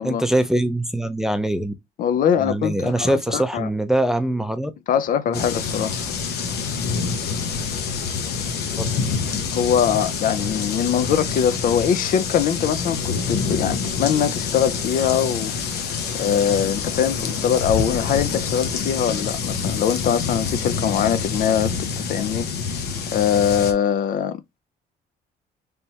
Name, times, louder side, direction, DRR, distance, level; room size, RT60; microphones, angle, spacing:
voice 1, 0.0-1.7 2.4-4.7 5.3-5.4 8.8-8.9, right 1 dB, 5° right, 0.4 m, -23 dB
voice 2, 2.0-3.7 4.9-6.0 9.5-22.5 23.1-24.6, left 8 dB, 55° left, 0.5 m, -22 dB
sound 1, 5.3-23.7, left 5 dB, 75° left, 0.9 m, -26 dB
3.4 x 3.1 x 2.8 m
cardioid pair, 110°, 17 cm